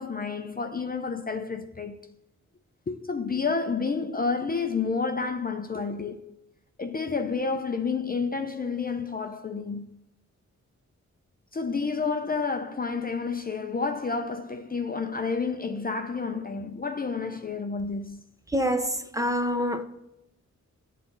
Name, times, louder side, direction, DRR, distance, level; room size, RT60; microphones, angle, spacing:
voice 1, 0.0-2.1 2.9-6.3 6.8-9.9 11.5-18.2, left 4 dB, 30° left, 0.5 m, -30 dB
voice 2, 18.5-19.8, equal, 10° right, 0.8 m, -26 dB
8.0 x 4.2 x 5.5 m
wide cardioid pair, 95°, 30 cm